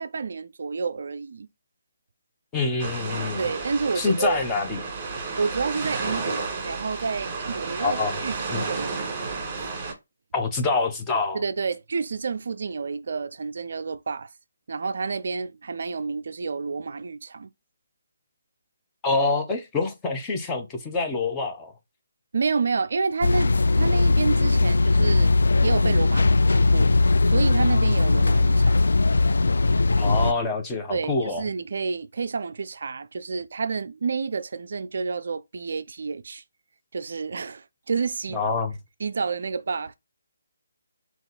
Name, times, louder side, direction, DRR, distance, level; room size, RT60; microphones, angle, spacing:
voice 1, 0.0-1.5 3.4-4.4 5.4-9.1 9.6-9.7 11.3-14.3 14.7-17.5 22.3-25.3 25.6-26.9 27.2-28.9 30.9-36.4 36.9-38.4 39.0-39.9, right 4 dB, 55° right, 0.3 m, -29 dB
voice 2, 2.5-3.4 4.0-4.8 7.8-8.1 8.5-8.6 10.3-11.4 19.0-21.7 30.0-31.4 38.3-38.7, left 3 dB, 15° left, 0.8 m, -26 dB
sound 1, 2.8-9.9, right 4 dB, 25° right, 1.7 m, -32 dB
sound 2, 23.2-30.3, left 3 dB, 65° left, 0.4 m, -19 dB
3.7 x 2.9 x 4.2 m
figure-of-eight pair, 145°, 0 cm